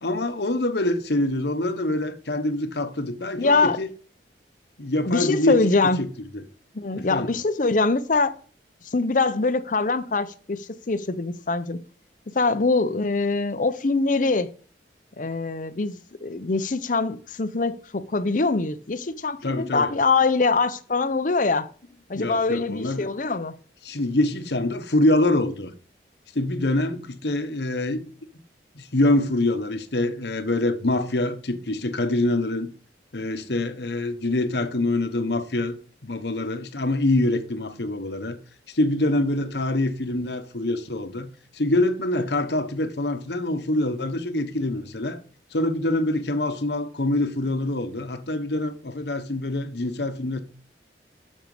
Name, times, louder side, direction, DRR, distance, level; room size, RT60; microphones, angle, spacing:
voice 1, 0.0-3.9 4.8-6.1 6.3-6.4 6.9-7.3 19.4-19.9 22.1-23.1 23.8-25.7 26.3-28.1 28.7-32.7 33.1-35.7 36.0-38.4 38.7-45.2 45.5-50.4, left 1 dB, 70° left, 1.1 m, -25 dB
voice 2, 3.4-3.8 5.0-6.0 6.7-8.3 8.9-11.8 12.3-14.5 15.2-21.7 22.1-23.5, left 3 dB, 45° left, 0.7 m, -23 dB
9.3 x 6.5 x 4.9 m
head